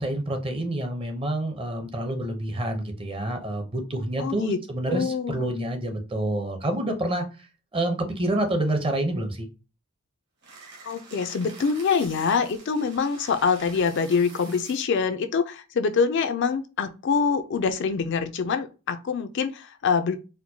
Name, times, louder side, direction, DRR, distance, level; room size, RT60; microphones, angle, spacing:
voice 1, 0.0-7.2 7.7-9.5, right 1 dB, 25° right, 0.7 m, -28 dB
voice 2, 4.2-4.6 4.9-5.5 10.8-20.2, left 5 dB, 55° left, 0.4 m, -25 dB
pasar papel sobre superficie rugosa, 10.4-15.0, right 4 dB, 50° right, 1.2 m, -46 dB
4.3 x 2.2 x 2.7 m
head